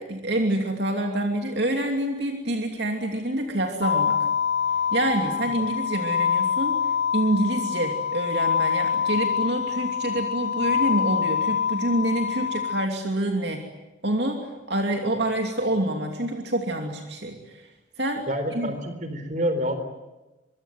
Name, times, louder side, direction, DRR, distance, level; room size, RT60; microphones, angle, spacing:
voice 1, 0.0-4.2 4.9-13.6 14.0-17.7 18.0-18.2 18.5-18.7, right 1 dB, 60° right, 3 dB, 2.9 m, -27 dB
sound 1, 3.8-12.9, left 7 dB, 55° left, 0.8 m, -25 dB
voice 2, 18.3-19.8, equal, 40° right, 9 dB, 4.0 m, -27 dB
25.0 x 24.0 x 9.3 m, 1.1 s
head